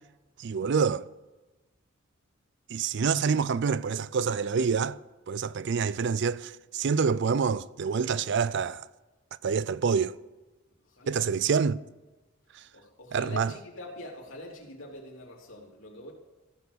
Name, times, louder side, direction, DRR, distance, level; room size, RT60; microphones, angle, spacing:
voice 1, 0.4-1.1 2.7-5.0 5.3-8.8 9.4-10.1 11.1-11.8 13.1-13.5, right 6 dB, 60° right, 0.4 m, -27 dB
voice 2, 10.8-11.2 12.7-16.1, left 1 dB, 75° left, 3.2 m, -44 dB
15.0 x 7.0 x 6.8 m
head